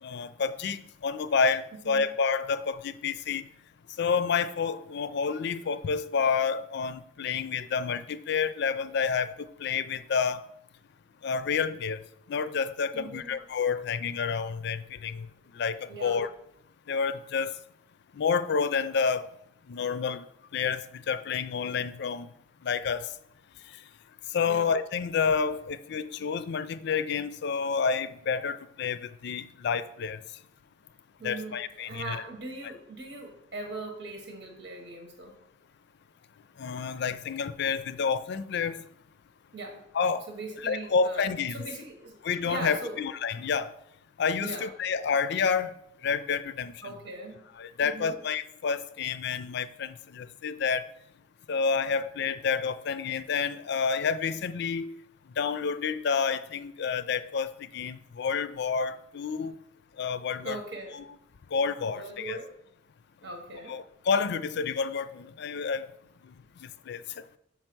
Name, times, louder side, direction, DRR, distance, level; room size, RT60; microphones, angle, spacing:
voice 1, 0.0-3.4 4.0-9.3 9.6-10.4 11.2-12.0 12.3-15.3 15.5-16.3 16.9-17.5 18.1-19.3 19.7-20.2 20.5-22.3 22.6-23.1 24.3-30.2 31.2-32.2 36.6-38.8 39.9-40.2 40.6-41.6 42.2-43.7 44.2-45.7 46.0-46.9 47.6-50.8 51.5-54.9 55.4-59.5 60.0-60.6 60.9-61.0 61.5-62.4 63.7-65.9 66.6-67.0, left 5 dB, 60° left, 13 dB, 0.4 m, -29 dB
voice 2, 12.9-13.4 15.9-16.2 24.5-24.7 31.2-35.4 39.5-39.8 40.3-42.1 42.4-43.0 44.4-44.7 46.8-47.4 47.8-48.2 60.4-61.0 61.8-62.5 63.2-63.8, right 2 dB, 80° right, 3 dB, 1.2 m, -40 dB
5.8 x 4.5 x 5.9 m, 0.74 s
head